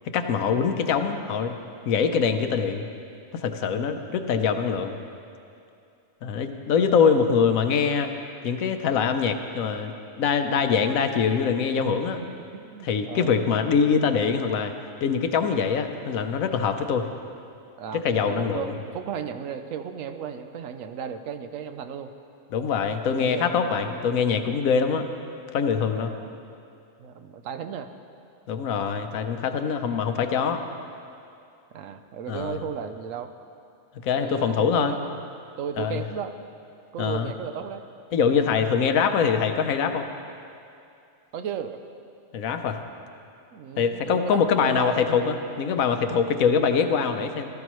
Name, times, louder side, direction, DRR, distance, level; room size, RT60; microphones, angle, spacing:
voice 1, 0.1-1.5 1.9-2.9 3.3-5.0 6.2-8.1 8.4-9.9 10.2-12.2 12.8-14.7 15.0-17.1 17.9-18.7 22.5-25.1 25.5-26.1 28.5-30.6 32.3-32.6 34.0-34.9 35.8-36.0 37.0-37.3 38.1-40.1 42.3-42.8 43.8-47.5, left 6 dB, 80° left, 7 dB, 1.2 m, -23 dB
voice 2, 12.5-13.5 17.8-22.1 23.2-24.0 25.8-26.4 27.0-27.9 31.7-33.3 34.2-35.3 35.6-36.3 36.9-37.8 41.3-41.8 43.5-45.0, right 7 dB, 75° right, 9 dB, 1.0 m, -35 dB
17.0 x 13.0 x 3.1 m, 2.6 s
omnidirectional pair, 1.4 m